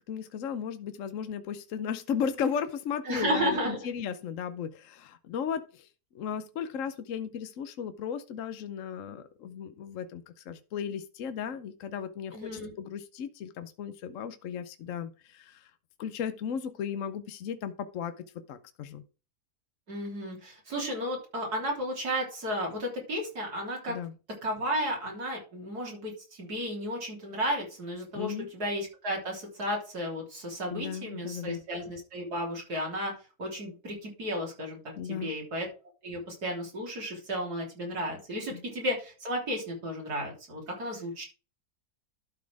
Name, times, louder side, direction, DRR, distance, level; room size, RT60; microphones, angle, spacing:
voice 1, 0.1-5.9 6.1-12.5 12.8-15.7 16.0-18.1 18.5-19.0 23.9-24.1 28.1-28.5 30.7-31.6 35.0-35.3 38.5-38.6, left 7 dB, 60° left, 10 dB, 1.0 m, -35 dB
voice 2, 3.1-3.9 12.3-12.7 19.9-24.0 24.4-33.1 33.4-34.8 35.1-35.7 36.0-41.2, equal, 90° right, -1 dB, 3.9 m, -33 dB
12.0 x 4.2 x 4.7 m, 0.34 s
omnidirectional pair, 1.6 m